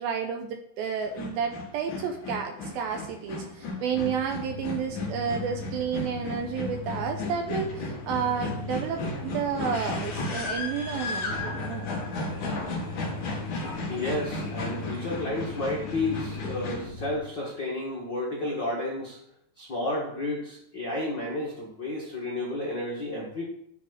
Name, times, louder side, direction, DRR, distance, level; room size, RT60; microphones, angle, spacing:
voice 1, 0.0-11.9, right 7 dB, 80° right, 4 dB, 2.2 m, -31 dB
sound 1, 1.0-16.9, left 2 dB, 50° left, 3.4 m, -35 dB
sound 2, 3.9-17.2, left 3 dB, 35° right, 2.2 m, -40 dB
voice 2, 13.9-19.2 19.6-23.4, left 2 dB, 70° left, -3 dB, 1.0 m, -31 dB
10.5 x 5.0 x 6.4 m, 0.74 s
omnidirectional pair, 5.0 m